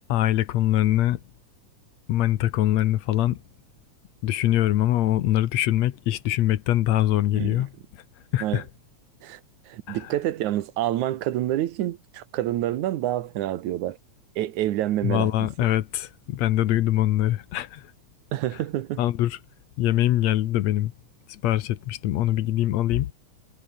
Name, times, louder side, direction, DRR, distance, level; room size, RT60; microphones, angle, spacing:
voice 1, 0.1-1.2 2.1-3.4 4.2-7.7 8.3-8.6 9.9-10.0 15.0-17.9 19.0-19.4 19.8-20.9 21.3-23.1, left 13 dB, 70° left, 2.1 m, -23 dB
voice 2, 7.3-7.6 8.4-8.6 9.2-9.4 9.7-14.0 14.4-15.7 18.3-19.0, right 13 dB, 85° right, 2.5 m, -28 dB
omnidirectional pair, 3.3 m